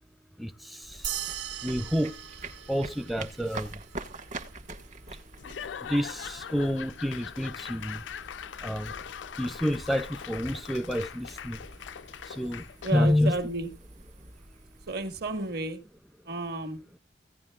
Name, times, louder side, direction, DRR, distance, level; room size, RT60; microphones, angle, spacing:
voice 1, 0.4-1.2 1.6-2.2 2.7-3.8 5.8-8.0 8.6-8.9 9.4-11.7 12.3-12.6 12.9-13.3, equal, ahead, 0.5 m, -29 dB
sound 1, 0.8-16.0, right 2 dB, 45° right, 1.4 m, -46 dB
sound 2, 1.0-3.8, right 10 dB, 80° right, 1.5 m, -38 dB
Laughter / Applause / Crowd, 5.4-13.1, left 8 dB, 90° left, 0.4 m, -41 dB
voice 2, 12.8-13.7 14.9-15.8 16.3-16.8, right 2 dB, 60° right, 1.8 m, -32 dB
16.5 x 10.0 x 2.3 m
head